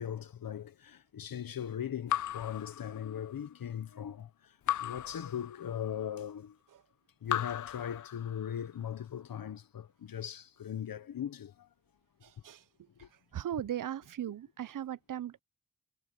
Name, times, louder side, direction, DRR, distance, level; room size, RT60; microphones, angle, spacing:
voice 1, 0.0-6.6 7.2-11.7 13.0-13.1, left 9 dB, 85° left, 0.8 m, -39 dB
Raindrop / Drip, 2.1-3.5 4.7-6.0 7.2-8.7, left 11 dB, 65° left, 0.4 m, -37 dB
voice 2, 12.2-12.6 13.3-15.4, right 11 dB, 70° right, 0.6 m, -38 dB
cardioid pair, 55°, 34 cm